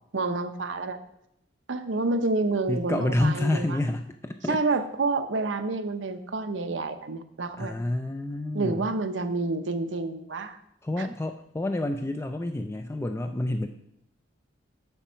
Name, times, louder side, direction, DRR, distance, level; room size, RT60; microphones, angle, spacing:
voice 1, 0.1-1.0 1.7-3.8 4.5-7.7 8.5-10.6 11.0-11.1, right 3 dB, 90° right, 8 dB, 0.8 m, -28 dB
voice 2, 2.7-4.6 7.6-8.9 10.8-13.7, left 1 dB, 15° left, 6 dB, 0.4 m, -28 dB
7.3 x 7.0 x 5.6 m, 0.77 s
head